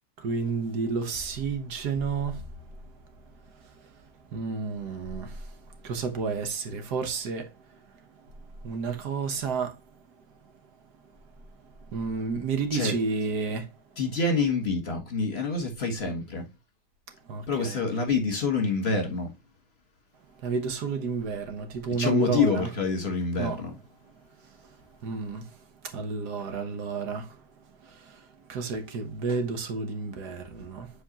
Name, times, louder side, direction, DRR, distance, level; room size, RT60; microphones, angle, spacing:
voice 1, 0.2-2.4 4.3-5.6 5.8-7.5 8.6-9.8 11.9-13.7 17.3-18.0 20.4-22.7 23.4-23.7 25.0-25.5 25.8-27.4 27.8-30.9, right 5 dB, 75° right, 1.6 m, -31 dB
voice 2, 14.0-16.4 17.5-19.3 22.0-23.7, left 4 dB, 40° left, 1.6 m, -27 dB
7.6 x 4.3 x 2.9 m
omnidirectional pair, 1.8 m